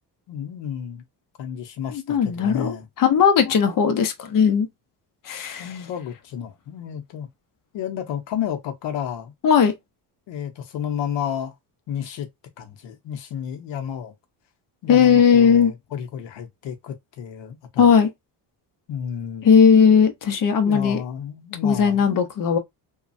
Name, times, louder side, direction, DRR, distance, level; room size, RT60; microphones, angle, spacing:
voice 1, 0.3-1.0 1.4-2.9 5.6-7.3 7.7-9.3 10.3-11.5 11.9-12.3 12.6-14.1 14.8-18.0 18.9-19.6 20.6-22.3, left 9 dB, 80° left, 0.8 m, -31 dB
voice 2, 1.9-4.7 5.3-5.7 9.4-9.7 14.9-15.7 17.8-18.1 19.4-21.0 21.6-22.6, left 7 dB, 50° left, 0.7 m, -17 dB
3.0 x 2.3 x 2.5 m
cardioid pair, 125°, 43 cm